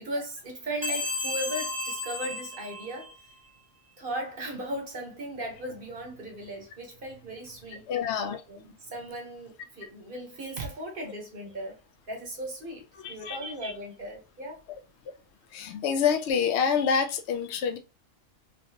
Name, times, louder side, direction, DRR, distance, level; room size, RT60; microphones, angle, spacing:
voice 1, 0.0-3.1 4.0-7.9 8.5-11.8 12.1-14.6, right 1 dB, 45° right, 1.2 m, -37 dB
sound 1, 0.8-3.4, left 2 dB, 20° right, 0.7 m, -33 dB
voice 2, 7.9-8.4 13.0-13.4 15.5-17.8, left 7 dB, 70° left, 0.8 m, -27 dB
3.1 x 2.6 x 2.8 m
omnidirectional pair, 1.3 m